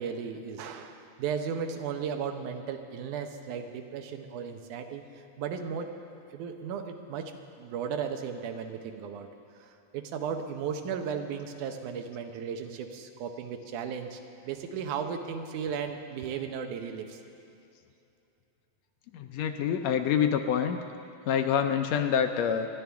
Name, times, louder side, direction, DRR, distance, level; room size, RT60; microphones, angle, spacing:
voice 1, 0.0-5.9 6.3-7.3 7.6-9.3 9.6-17.2, right 7 dB, 85° right, 6 dB, 2.4 m, -35 dB
voice 2, 19.1-20.8 21.3-22.7, left 8 dB, 75° left, 7 dB, 1.7 m, -26 dB
26.5 x 11.0 x 3.5 m, 2.7 s
omnidirectional pair, 3.4 m